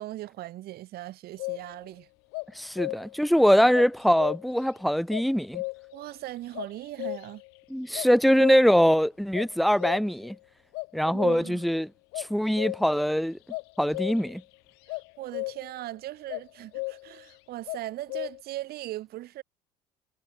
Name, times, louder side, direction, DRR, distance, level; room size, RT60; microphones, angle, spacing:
voice 1, 0.0-2.1 5.9-7.4 11.0-11.7 14.9-19.4, right 15 dB, 60° right, 1.4 m, -39 dB
sound 1, 1.4-1.9 2.3-3.3 3.7-4.7 5.1-6.0 6.5-7.6 7.9-8.9 9.3-10.4 10.7-11.7 12.1-13.1 13.5-14.4 14.9-15.8 16.3-17.3 17.7-18.4, left 29 dB, 75° left, 0.7 m, -35 dB
voice 2, 2.6-5.6 7.7-10.4 10.9-11.9 12.2-13.4 13.8-14.4, equal, ahead, 0.3 m, -23 dB
supercardioid pair, 75°, 18 cm